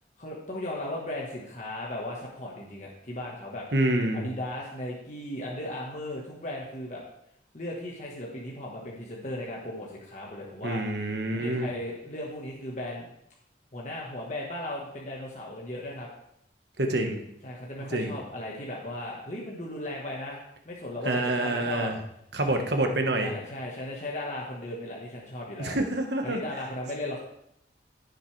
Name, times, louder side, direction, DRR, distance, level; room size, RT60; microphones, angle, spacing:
voice 1, 0.2-3.7 4.1-7.0 7.5-10.8 11.4-13.1 13.7-16.1 17.4-21.9 22.5-22.7 23.2-25.8 26.2-27.2, left 1 dB, 40° left, -3 dB, 1.4 m, -36 dB
voice 2, 3.7-4.3 10.6-11.7 16.8-17.2 17.9-18.2 21.0-22.0 22.3-23.3 25.6-26.4, right 1 dB, 65° right, 4 dB, 1.4 m, -27 dB
15.0 x 6.6 x 3.3 m, 0.75 s
head